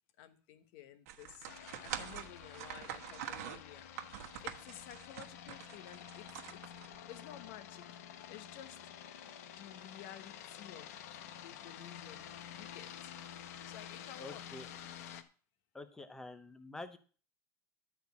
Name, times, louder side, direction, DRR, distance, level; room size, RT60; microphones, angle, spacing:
voice 1, 0.2-1.5 1.8-3.9 4.4-6.6 7.1-7.9 8.3-8.8 9.6-11.0 11.4-13.1 13.7-14.4, left 11 dB, 50° left, 10 dB, 1.2 m, -53 dB
sound 1, 1.1-7.2, right 11 dB, 75° right, 1.3 m, -45 dB
sound 2, 1.5-15.2, left 9 dB, 75° left, 1.1 m, -50 dB
voice 2, 14.2-14.7 15.7-17.0, left 2 dB, 5° left, 10 dB, 0.7 m, -47 dB
11.5 x 4.6 x 8.2 m, 0.40 s
supercardioid pair, 175°, 8 cm